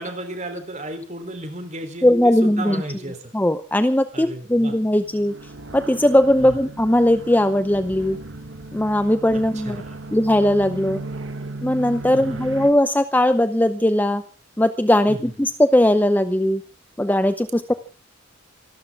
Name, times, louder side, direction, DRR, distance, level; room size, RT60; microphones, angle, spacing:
voice 1, 0.0-3.4 4.1-4.7 6.4-6.6 9.6-10.0 12.1-12.4 15.1-15.3, right 1 dB, 35° right, 7 dB, 3.7 m, -34 dB
voice 2, 2.0-2.8 3.3-5.3 5.7-8.2 8.7-9.8 10.1-11.0 11.6-14.2 14.6-16.6 17.0-17.7, left 1 dB, 10° left, 11 dB, 0.7 m, -19 dB
sound 1, 4.9-12.7, right 2 dB, 60° right, 1.9 m, -36 dB
26.5 x 13.0 x 3.6 m, 0.36 s
head